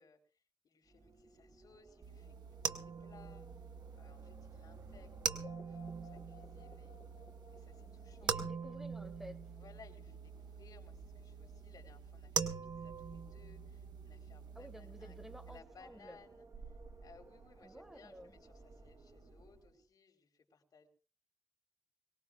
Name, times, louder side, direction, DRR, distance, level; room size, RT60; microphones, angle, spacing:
voice 1, 0.0-3.5 4.0-7.0 7.5-8.3 9.5-15.2 15.5-16.5 17.0-20.9, left 5 dB, 65° left, 4 dB, 3.7 m, -63 dB
Wind, 0.8-19.9, right 3 dB, 50° right, 2.5 m, -58 dB
sound 1, 2.0-15.6, right 6 dB, 75° right, 1.1 m, -43 dB
sound 2, 5.4-9.4, left 4 dB, 10° left, 3.8 m, -59 dB
voice 2, 8.2-9.4 14.5-16.2 17.6-18.4, equal, 5° right, 10 dB, 1.7 m, -52 dB
23.0 x 18.5 x 2.3 m, 0.37 s
cardioid pair, 95°, 7 cm